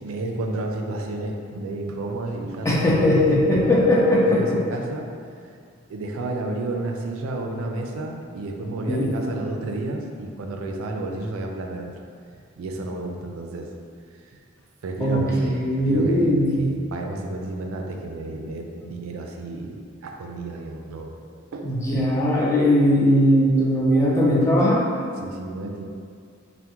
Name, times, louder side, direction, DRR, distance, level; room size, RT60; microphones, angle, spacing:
voice 1, 0.0-3.9 4.2-5.1 5.9-12.0 12.6-13.7 14.8-15.6 15.9-21.1 21.5-21.7 25.2-25.9, right 2 dB, 85° right, 2 dB, 0.4 m, -31 dB
voice 2, 2.6-4.6 8.9-9.1 15.0-16.6 21.6-24.8, left 1 dB, 15° left, -5 dB, 0.4 m, -19 dB
3.4 x 2.1 x 2.9 m, 2.2 s
head